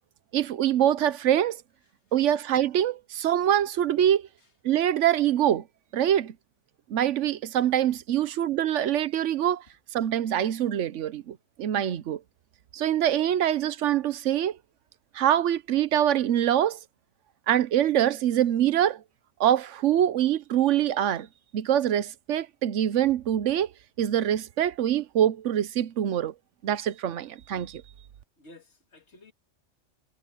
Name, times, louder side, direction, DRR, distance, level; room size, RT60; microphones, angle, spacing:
voice 1, 0.3-1.6 2.1-4.3 4.6-5.6 5.9-6.3 6.9-9.6 9.9-12.2 12.7-14.6 15.1-16.8 17.5-19.0 19.4-21.3 21.5-23.7 24.0-26.3 26.6-27.8, right 11 dB, 80° right, 1.1 m, -24 dB
voice 2, 28.4-29.3, left 1 dB, 65° left, 2.5 m, -52 dB
omnidirectional pair, 1.2 m